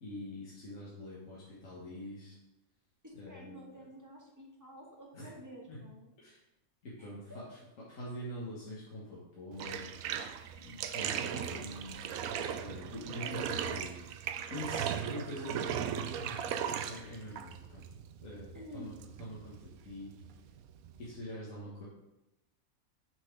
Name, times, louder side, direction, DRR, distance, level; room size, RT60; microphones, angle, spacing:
voice 1, 0.0-2.3 3.2-3.6 5.1-5.3 5.7-5.8 6.2-6.4 6.8-7.2 7.9-9.9 10.6-11.9 12.3-13.9 14.5-17.8 18.2-18.9 19.2-20.1 21.0-21.9, left 1 dB, 65° left, -6 dB, 1.8 m, -44 dB
voice 2, 3.0-6.1 7.0-7.4 11.1-11.7 13.2-14.2 18.5-18.9, equal, 15° right, -2 dB, 1.3 m, -50 dB
Bathtub (filling or washing), 9.5-21.2, right 9 dB, 80° right, 1.0 m, -38 dB
6.9 x 4.1 x 5.2 m, 0.91 s
omnidirectional pair, 1.5 m